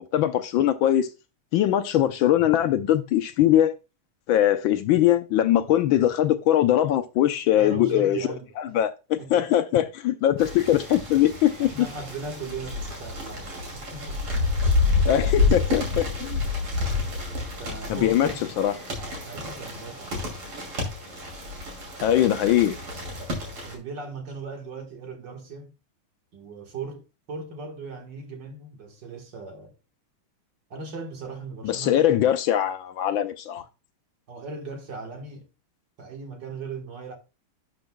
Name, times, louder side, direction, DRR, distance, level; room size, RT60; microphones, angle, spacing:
voice 1, 0.1-1.1 1.5-3.7 4.3-8.2 8.7-11.7 15.1-16.4 17.9-18.3 18.6-18.8 22.0-22.8 31.6-33.6, left 12 dB, 75° left, 1.3 m, -21 dB
voice 2, 7.5-8.7 9.2-9.5 11.6-14.3 17.6-18.4 19.0-20.2 23.6-25.7 26.3-29.7 30.7-32.3 33.6-33.7 34.3-35.5 36.0-37.2, right 4 dB, 55° right, 2.2 m, -38 dB
sound 1, 10.4-23.8, left 3 dB, 70° right, 3.5 m, -29 dB
11.5 x 5.9 x 2.2 m
omnidirectional pair, 2.4 m